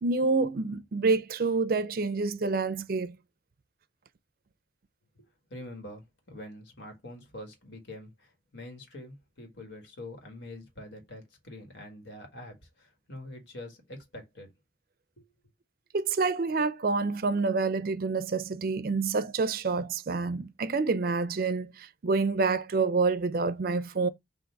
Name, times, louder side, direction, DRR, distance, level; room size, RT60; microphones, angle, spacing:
voice 1, 0.0-3.2 15.9-24.1, right 4 dB, 55° right, 0.4 m, -27 dB
voice 2, 5.1-14.5 15.2-15.3, left 1 dB, 90° left, 1.7 m, -45 dB
3.8 x 2.6 x 4.5 m
head